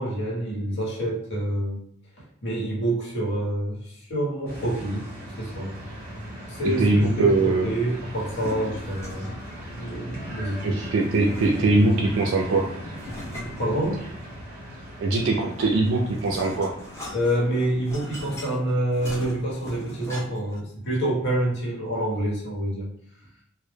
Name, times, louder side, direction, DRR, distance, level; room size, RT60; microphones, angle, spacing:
voice 1, 0.0-1.9 2.2-5.8 6.5-9.4 9.8-11.3 13.4-14.1 17.1-23.0, right 1 dB, 55° left, -5 dB, 1.0 m, -27 dB
sound 1, 4.5-18.2, equal, 40° right, 0.9 m, -39 dB
voice 2, 6.6-7.7 10.6-12.7 15.0-16.7, right 2 dB, 60° right, 0 dB, 0.3 m, -21 dB
sound 2, 8.1-9.5 10.9-11.9 12.9-14.3 15.5-20.6, left 1 dB, 15° left, 0.5 m, -40 dB
2.1 x 2.0 x 3.1 m, 0.69 s
head